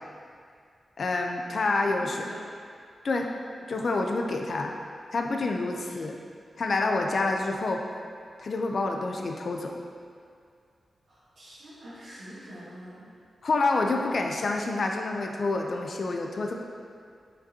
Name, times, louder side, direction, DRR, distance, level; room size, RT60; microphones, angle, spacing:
voice 1, 1.0-2.3 3.0-3.3 3.7-4.7 5.1-6.2 6.6-7.8 8.4-9.8 13.4-16.5, left 3 dB, 45° left, 2 dB, 0.5 m, -27 dB
voice 2, 1.8-2.4 5.8-5.9 11.1-13.1, equal, 75° right, -13 dB, 1.5 m, -46 dB
7.6 x 5.2 x 2.8 m, 2.3 s
wide cardioid pair, 175°, 0 cm